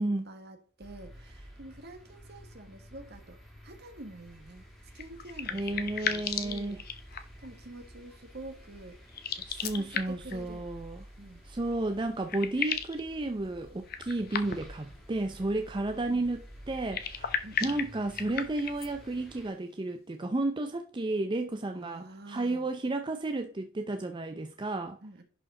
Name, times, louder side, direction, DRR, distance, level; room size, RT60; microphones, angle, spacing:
voice 1, 0.0-3.4 3.6-4.7 4.9-6.8 7.1-9.0 9.3-9.5 9.7-10.7 11.2-11.4 12.6-12.7 15.9-16.3 17.4-17.8 21.7-22.7 25.0-25.2, right 1 dB, 50° right, 1.5 m, -47 dB
sound 1, 0.8-19.5, equal, ahead, 2.1 m, -51 dB
sound 2, 4.9-7.5 9.1-10.4 11.7-11.8 12.0-13.0 13.9-14.8 16.8-18.9, left 7 dB, 45° left, 0.9 m, -35 dB
voice 2, 5.5-6.8 9.5-11.0 11.4-25.0, right 2 dB, 20° right, 0.5 m, -32 dB
11.0 x 4.8 x 3.7 m
head